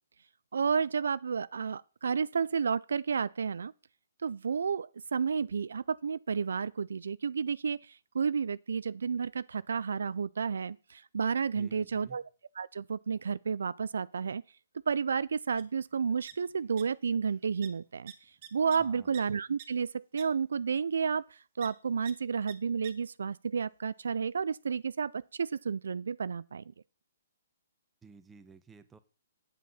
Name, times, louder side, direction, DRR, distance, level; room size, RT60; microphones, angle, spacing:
voice 1, 0.5-3.7 4.2-12.2 12.6-14.4 14.9-18.1 18.5-26.6, right 6 dB, 75° right, 0.4 m, -31 dB
voice 2, 11.5-12.2 18.8-19.2 28.0-29.0, right 5 dB, 10° right, 0.9 m, -54 dB
sound 1, 15.6-15.7 15.9-16.8 17.1-17.3 17.6-17.7 18.1-19.2 19.6-19.7 20.2-20.3 21.6-21.7 22.1-22.2 22.5-22.6 22.8-22.9, right 10 dB, 45° right, 1.5 m, -47 dB
8.4 x 7.6 x 5.5 m
hypercardioid pair, 140°, 0 cm